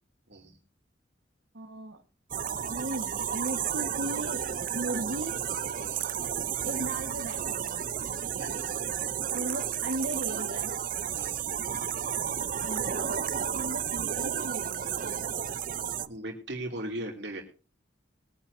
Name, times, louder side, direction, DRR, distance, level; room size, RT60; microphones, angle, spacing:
voice 1, 1.5-2.0 2.7-4.5 4.7-5.4 6.6-7.8 9.3-10.7 12.6-15.1, right 1 dB, 85° right, 3 dB, 1.5 m, -36 dB
sound 1, 2.3-16.1, right 8 dB, 45° right, 0.6 m, -32 dB
voice 2, 5.8-6.1 8.4-8.8 11.1-11.5 16.1-17.4, right 1 dB, 65° right, 1 dB, 2.6 m, -38 dB
21.5 x 10.0 x 2.7 m, 0.34 s
head